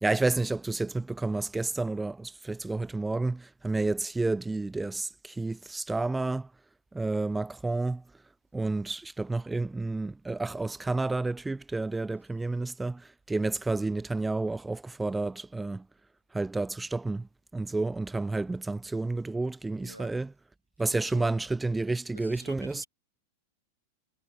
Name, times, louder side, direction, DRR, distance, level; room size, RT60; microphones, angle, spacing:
voice 1, 0.0-6.5 6.9-8.0 8.5-15.9 16.3-17.3 17.5-20.3 20.8-22.8, right 3 dB, 10° right, 0.5 m, -30 dB
voice 2, 20.9-21.3 22.1-22.9, equal, 90° right, 1.5 m, -49 dB
figure-of-eight pair, 90°, 0 cm